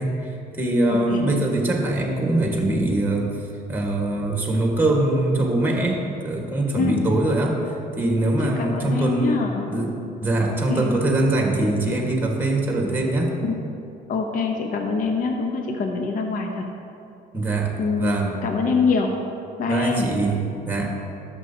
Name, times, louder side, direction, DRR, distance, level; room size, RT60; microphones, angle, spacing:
voice 1, 0.0-3.3 3.7-9.4 9.7-9.9 10.2-13.3 17.3-18.3 19.7-20.4 20.6-20.9, right 2 dB, 10° right, 0 dB, 1.5 m, -23 dB
voice 2, 0.9-1.2 6.8-7.0 8.4-9.7 10.5-11.0 11.8-11.9 13.4-13.6 14.1-16.6 17.8-19.1 19.6-20.1, left 4 dB, 55° left, 3 dB, 0.8 m, -25 dB
12.5 x 7.0 x 2.8 m, 2.7 s
cardioid pair, 110°, 17 cm